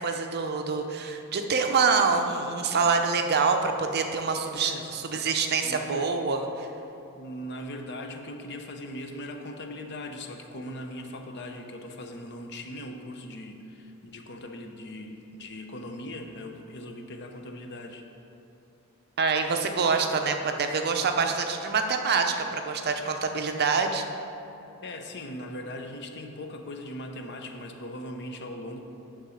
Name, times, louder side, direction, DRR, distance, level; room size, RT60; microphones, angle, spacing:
voice 1, 0.0-6.7 19.2-24.0, right 5 dB, 45° right, 5 dB, 0.6 m, -26 dB
voice 2, 4.6-5.2 5.6-6.1 7.2-18.1 24.8-28.8, left 1 dB, 50° left, 4 dB, 0.7 m, -39 dB
9.6 x 3.7 x 6.4 m, 2.9 s
head